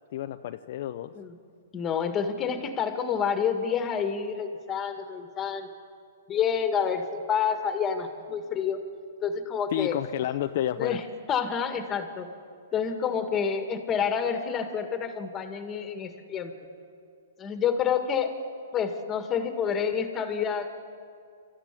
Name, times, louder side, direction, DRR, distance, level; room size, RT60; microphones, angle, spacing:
voice 1, 0.1-1.1 9.7-11.0, left 12 dB, 50° left, 8 dB, 0.6 m, -30 dB
voice 2, 1.7-5.7 6.3-8.8 9.2-10.0 10.8-11.0 11.3-12.3 12.7-16.5 17.4-18.3 18.7-20.7, left 7 dB, 20° left, 6 dB, 1.9 m, -28 dB
27.5 x 14.0 x 9.8 m, 2.3 s
hypercardioid pair, 155°, 0 cm